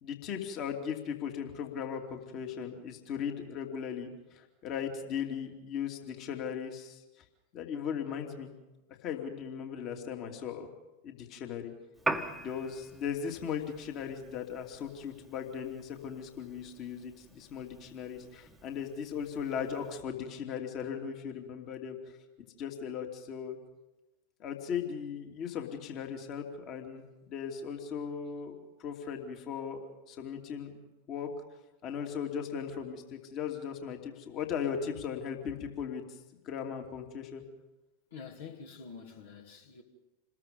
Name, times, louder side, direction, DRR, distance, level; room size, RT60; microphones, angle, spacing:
voice 1, 0.0-7.0 7.5-8.5 9.0-10.7 11.0-11.7 12.3-22.2 22.6-23.6 24.4-31.3 31.8-36.0 36.4-37.4, left 7 dB, 35° left, 2.8 m, -38 dB
Piano, 12.0-20.0, right 2 dB, 5° right, 1.4 m, -42 dB
voice 2, 38.1-39.8, left 6 dB, 60° left, 2.5 m, -47 dB
27.5 x 21.0 x 5.4 m
figure-of-eight pair, 90°, 0 cm